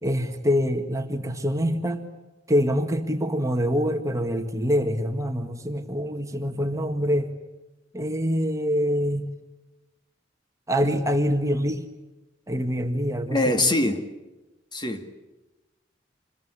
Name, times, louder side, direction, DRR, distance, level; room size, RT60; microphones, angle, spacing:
voice 1, 0.0-2.1 2.5-7.3 7.9-9.3 10.7-11.9 12.5-13.7, equal, 20° right, 1.9 m, -25 dB
voice 2, 13.3-14.1 14.7-15.1, left 2 dB, 25° left, 2.2 m, -23 dB
28.0 x 21.0 x 9.9 m
head